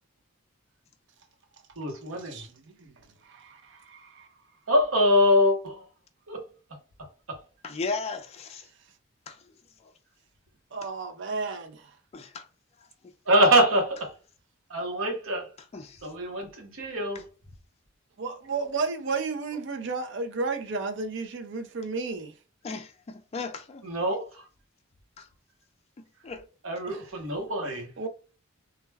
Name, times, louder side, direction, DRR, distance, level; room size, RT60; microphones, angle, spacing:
voice 1, 1.8-2.5 4.7-5.9 6.3-6.4 7.0-7.4 13.3-14.2 14.7-15.5 16.0-17.3 23.8-24.5 26.6-27.9, equal, 85° right, 0.9 m, -24 dB
voice 2, 2.3-2.9 3.2-4.3 10.7-11.9 18.2-22.3 26.9-27.0 28.0-28.1, right 4 dB, 60° right, 0.5 m, -33 dB
voice 3, 7.6-8.7 9.3-9.4 12.1-12.5 13.0-13.1 15.7-16.0 22.6-23.8 25.2-25.3 26.0-26.4, left 4 dB, 30° left, 0.3 m, -36 dB
2.3 x 2.1 x 3.3 m
head